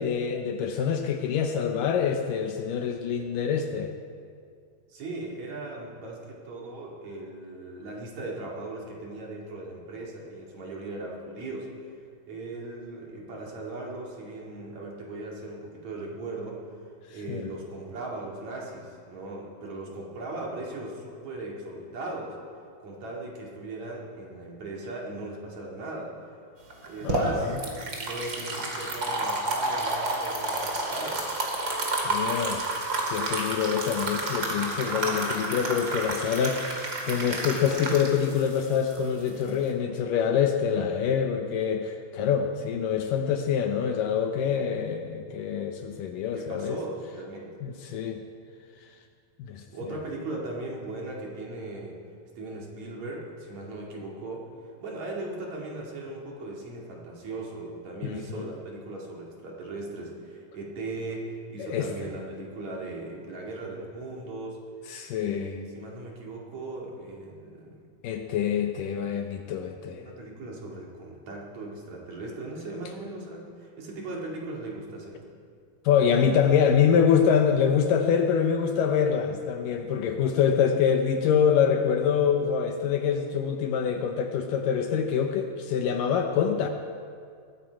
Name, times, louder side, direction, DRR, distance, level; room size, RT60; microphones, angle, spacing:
voice 1, 0.0-3.9 17.3-17.5 27.0-27.6 32.0-32.6 33.1-46.8 47.6-48.2 49.4-49.6 58.0-58.5 61.6-61.9 64.9-65.5 68.0-70.1 75.9-86.7, left 7 dB, 75° left, 5 dB, 2.2 m, -25 dB
voice 2, 4.9-11.7 12.3-16.6 17.1-22.4 22.8-26.2 26.8-31.2 46.3-47.6 49.6-52.0 52.4-64.6 65.1-67.8 70.0-75.2, right 2 dB, 50° right, -2 dB, 3.4 m, -38 dB
sound 1, 26.7-39.7, right 2 dB, 35° right, 2.5 m, -30 dB
19.5 x 15.0 x 4.7 m, 2.2 s
omnidirectional pair, 4.3 m